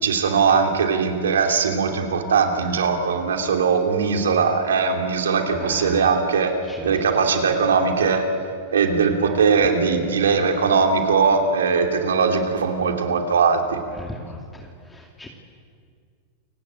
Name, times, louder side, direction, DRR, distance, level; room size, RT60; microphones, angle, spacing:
voice 1, 0.0-6.6 6.8-8.3 8.7-13.8, right 5 dB, 90° right, 4 dB, 3.1 m, -20 dB
voice 2, 5.6-6.0 6.8-6.9 14.0-14.4 14.9-15.3, left 2 dB, 10° left, 0 dB, 2.6 m, -36 dB
29.0 x 17.0 x 8.9 m, 2.2 s
hypercardioid pair, 115°, 0 cm